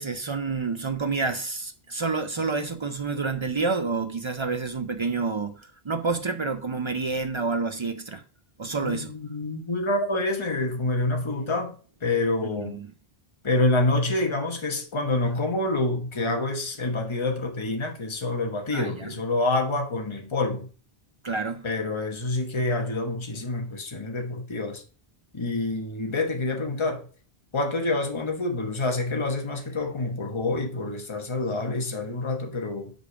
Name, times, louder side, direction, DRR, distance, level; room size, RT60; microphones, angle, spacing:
voice 1, 0.0-8.2 8.6-9.1 12.4-12.9 18.7-19.1 21.2-21.6, right 4 dB, 45° right, 0.4 m, -29 dB
voice 2, 8.8-12.8 13.4-20.7 21.6-24.8 25.3-27.1 27.5-32.9, left 2 dB, 30° left, 1.1 m, -27 dB
5.3 x 4.9 x 4.8 m
omnidirectional pair, 1.1 m